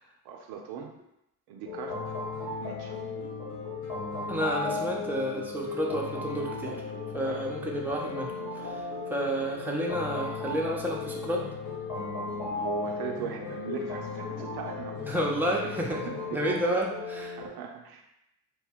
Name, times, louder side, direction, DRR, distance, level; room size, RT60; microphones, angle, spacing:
voice 1, 0.2-0.9 1.5-2.0 2.6-3.0 7.2-7.4 10.4-10.5 12.5-15.0 16.0-16.6 17.4-18.0, right 7 dB, 60° right, 2 dB, 0.5 m, -39 dB
sound 1, 1.7-17.5, left 4 dB, 50° left, 1.1 m, -36 dB
sound 2, 2.0-16.4, left 1 dB, 85° left, 0.6 m, -47 dB
voice 2, 4.3-6.8 7.1-8.8 9.1-11.5 15.0-16.0 16.3-17.4, right 1 dB, 5° right, -2 dB, 0.7 m, -30 dB
2.6 x 2.2 x 3.5 m, 0.83 s
hypercardioid pair, 45°, 43 cm